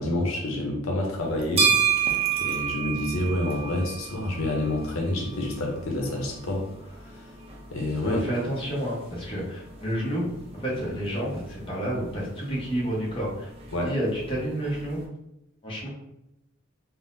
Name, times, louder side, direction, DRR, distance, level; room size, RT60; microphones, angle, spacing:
voice 1, 0.0-1.7 2.4-7.2 7.7-8.2 13.7-13.9, left 1 dB, 80° left, 0 dB, 0.7 m, -28 dB
sound 1, 1.2-15.0, right 7 dB, 30° right, 0.5 m, -32 dB
voice 2, 8.0-13.5 13.8-15.1 15.6-15.9, equal, 25° left, -5 dB, 0.9 m, -30 dB
3.6 x 2.1 x 2.6 m, 0.84 s
head